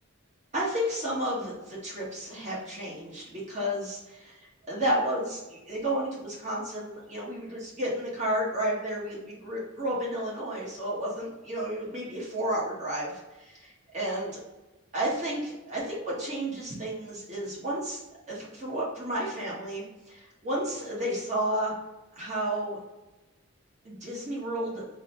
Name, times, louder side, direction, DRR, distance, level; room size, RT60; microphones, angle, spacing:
voice 1, 0.5-4.1 4.7-14.4 14.9-18.0 18.3-21.7 22.2-22.8 23.8-24.8, right 1 dB, 35° right, -6 dB, 1.2 m, -32 dB
3.7 x 2.7 x 4.2 m, 1.1 s
head